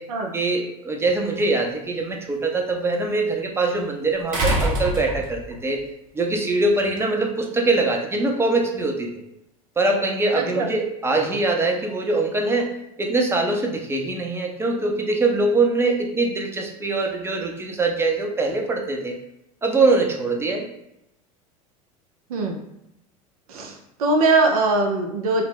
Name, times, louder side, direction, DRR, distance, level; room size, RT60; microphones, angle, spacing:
voice 1, 0.3-5.8 6.1-9.2 9.8-12.7 13.0-19.1 19.6-20.7, right 3 dB, 15° right, 2 dB, 0.5 m, -23 dB
sound 1, 1.1-1.2 4.3-5.6 7.0-7.1, right 1 dB, 45° right, 0.9 m, -24 dB
voice 2, 10.3-10.7 22.3-22.6 23.5-25.4, right 3 dB, 85° right, 2 dB, 0.5 m, -21 dB
2.4 x 2.1 x 3.3 m, 0.82 s
hypercardioid pair, 90°, 18 cm